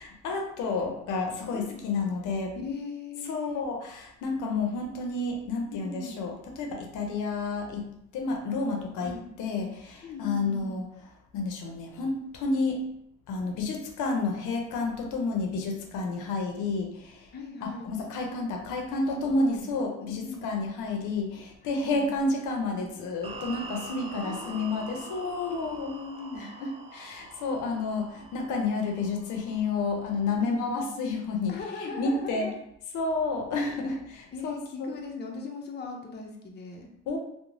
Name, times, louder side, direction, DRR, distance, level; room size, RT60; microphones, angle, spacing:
voice 1, 0.0-2.6 3.3-7.9 8.1-9.1 9.4-10.8 11.3-12.8 13.3-17.3 17.6-26.0 26.3-26.5 26.9-31.5 31.8-32.5 32.9-34.9 37.1-37.2, left 3 dB, 85° left, 2 dB, 0.5 m, -30 dB
voice 2, 1.5-1.9 2.6-3.6 5.7-6.2 9.0-9.3 10.0-10.8 17.3-17.9 18.9-19.8 20.1-20.5 21.6-22.1 24.2-26.5 30.4-30.9 31.5-32.6 34.3-36.9, left 4 dB, 35° left, 1 dB, 0.5 m, -39 dB
sound 1, 23.2-30.4, right 3 dB, 20° right, 0.3 m, -45 dB
2.9 x 2.0 x 2.5 m, 0.75 s
cardioid pair, 90°, 30 cm